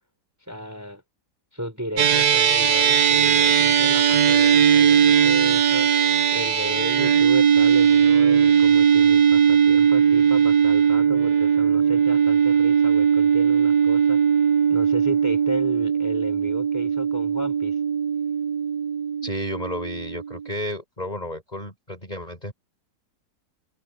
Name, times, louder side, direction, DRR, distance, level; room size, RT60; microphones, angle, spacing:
voice 1, 0.5-1.0 1.5-17.8, equal, 10° right, 5.9 m, -34 dB
sound 1, 2.0-20.5, right 7 dB, 65° right, 1.6 m, -19 dB
voice 2, 19.2-22.5, left 1 dB, 20° left, 7.5 m, -32 dB
omnidirectional pair, 1.9 m